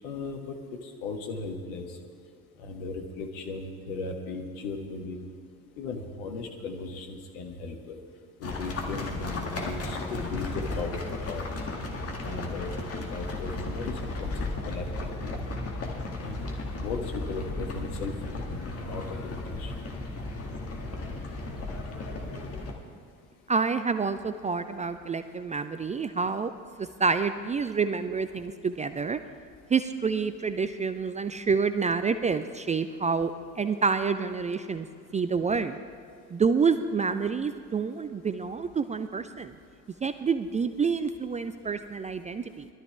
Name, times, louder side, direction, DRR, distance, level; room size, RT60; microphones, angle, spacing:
voice 1, 0.0-1.9 2.6-5.3 5.8-8.0 8.4-11.4 12.2-14.3 14.7-15.3 16.2-16.5 16.8-18.1 18.4-19.7, left 3 dB, 65° left, 4 dB, 1.5 m, -37 dB
sound 1, 8.4-22.7, left 2 dB, 30° left, 2.0 m, -35 dB
voice 2, 23.5-26.5 26.8-29.2 29.7-34.9 35.1-35.8 36.3-39.5 40.0-42.7, right 5 dB, 15° right, 10 dB, 0.4 m, -28 dB
20.5 x 12.5 x 3.4 m, 2.3 s
figure-of-eight pair, 50°, 43 cm